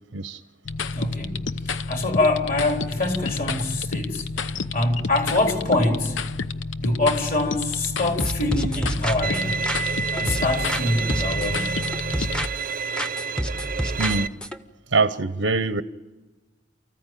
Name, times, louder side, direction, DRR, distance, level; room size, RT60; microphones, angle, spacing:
sound 1, 0.6-12.5, left 4 dB, 85° left, 0.8 m, -30 dB
voice 1, 0.9-6.2 6.8-9.7 10.1-11.9, left 2 dB, 45° left, 3.9 m, -25 dB
sound 2, 8.2-10.8 11.1-12.7 13.0-14.6, equal, 5° left, 0.8 m, -29 dB
Bowed string instrument, 9.2-14.3, right 5 dB, 45° right, 0.7 m, -29 dB
voice 2, 14.0-14.3 14.9-15.8, right 3 dB, 85° right, 0.9 m, -23 dB
29.0 x 15.0 x 9.2 m
head